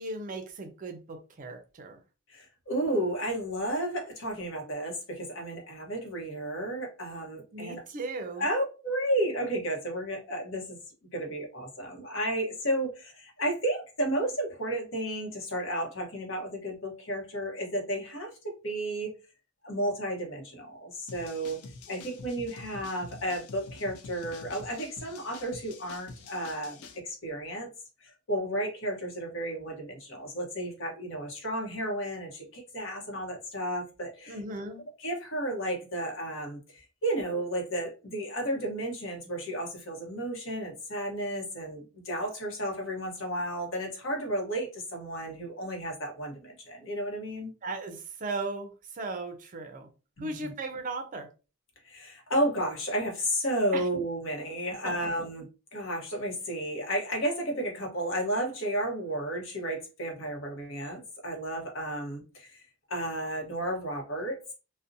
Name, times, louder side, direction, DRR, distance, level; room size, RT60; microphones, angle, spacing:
voice 1, 0.0-2.0 7.5-8.5 34.3-34.8 47.6-49.9 50.2-51.3 53.7-53.9 54.8-54.9, right 3 dB, 40° right, 0.4 m, -37 dB
voice 2, 2.3-7.8 8.4-10.8 11.1-19.1 19.6-21.6 21.9-27.7 28.0-34.4 35.0-47.5 50.2-50.5 51.8-55.5 55.7-62.6 62.9-64.4, right 1 dB, 65° left, 0.9 m, -32 dB
sound 1, 21.1-27.0, left 3 dB, 90° left, 0.4 m, -47 dB
2.5 x 2.1 x 2.5 m
head